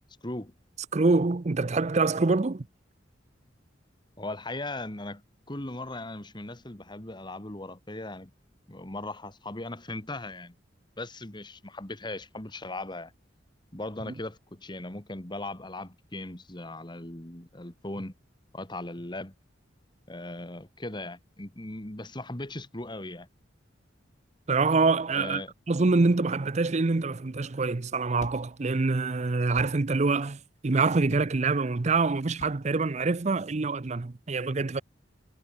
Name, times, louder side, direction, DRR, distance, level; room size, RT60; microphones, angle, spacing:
voice 1, 0.9-2.6 14.1-14.2 24.5-25.4 25.7-34.8, right 3 dB, 35° right, 0.6 m, -25 dB
voice 2, 4.2-5.2 5.5-8.3 8.7-10.5 11.0-13.1 13.7-18.1 18.5-19.3 20.1-23.3 25.1-25.5, left 2 dB, 25° left, 1.9 m, -38 dB
sound 1, 28.2-33.6, left 1 dB, 40° left, 4.0 m, -51 dB
head